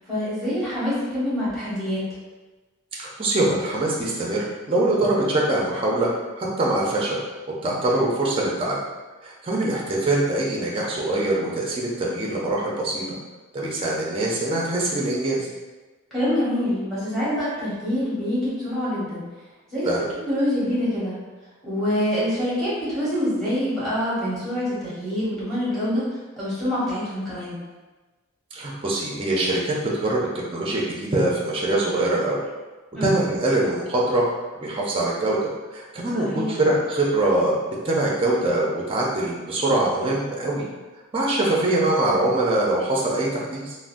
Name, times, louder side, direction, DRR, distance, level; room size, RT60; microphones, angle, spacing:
voice 1, 0.1-2.0 16.1-19.2 19.7-19.9 20.3-21.2 21.6-26.1 26.4-27.6 32.9-33.2 36.1-36.6, equal, ahead, -10 dB, 1.2 m, -25 dB
voice 2, 2.9-6.1 6.4-7.2 7.6-8.8 9.2-13.0 13.5-15.5 19.9-20.1 28.5-32.4 33.0-34.2 34.6-37.5 37.8-40.6 41.1-43.8, right 2 dB, 25° right, -3 dB, 0.4 m, -23 dB
3.6 x 2.0 x 2.5 m, 1.2 s
head